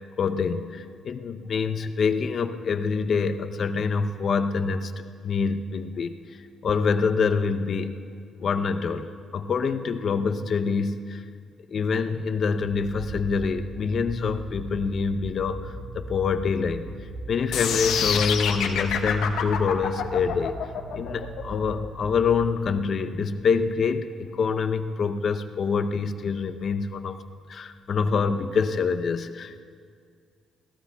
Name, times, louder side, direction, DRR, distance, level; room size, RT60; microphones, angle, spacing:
voice 1, 0.2-4.9 5.2-6.1 6.6-7.9 8.4-9.1 9.3-11.2 11.7-16.9 17.3-20.6 20.9-27.2 27.5-29.6, left 5 dB, 55° left, 8 dB, 0.7 m, -26 dB
sound 1, 12.6-22.5, right 2 dB, 25° right, 3.3 m, -39 dB
sound 2, 17.5-23.6, left 8 dB, 85° left, 1.0 m, -28 dB
25.0 x 17.0 x 2.3 m, 2.1 s
cardioid pair, 90°, 0 cm